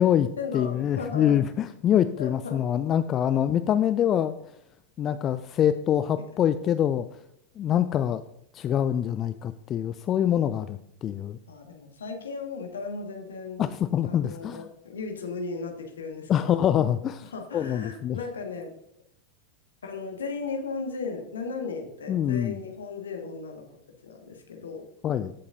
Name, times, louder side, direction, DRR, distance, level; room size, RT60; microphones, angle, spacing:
voice 1, 0.0-1.4 2.2-2.6 3.3-3.4 11.5-13.6 14.0-16.7 17.3-18.7 19.8-23.7 24.0-24.9, left 4 dB, 70° left, 3 dB, 1.5 m, -36 dB
voice 2, 0.5-4.3 5.0-7.1 7.6-8.2 8.5-11.4 13.6-14.7 16.3-18.2 22.1-22.6 25.0-25.3, left 10 dB, 30° left, 12 dB, 0.3 m, -25 dB
15.0 x 6.7 x 2.6 m, 0.75 s
figure-of-eight pair, 90°, 0 cm